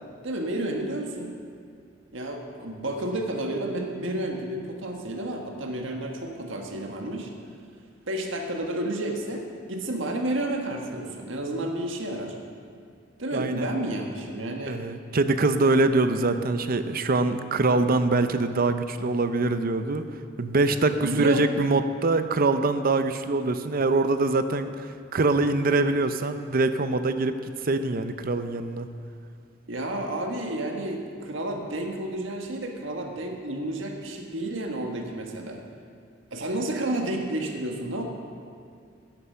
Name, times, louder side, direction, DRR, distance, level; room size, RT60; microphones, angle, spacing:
voice 1, 0.2-1.4 2.1-7.3 8.1-12.4 13.2-14.8 21.0-21.4 29.7-35.6 36.3-38.0, right 1 dB, 85° right, 2 dB, 1.5 m, -31 dB
voice 2, 13.3-13.7 14.7-20.0 20.4-24.7 25.1-27.4 27.6-28.9, right 3 dB, 50° right, 10 dB, 0.6 m, -24 dB
13.0 x 10.0 x 5.6 m, 2.3 s
head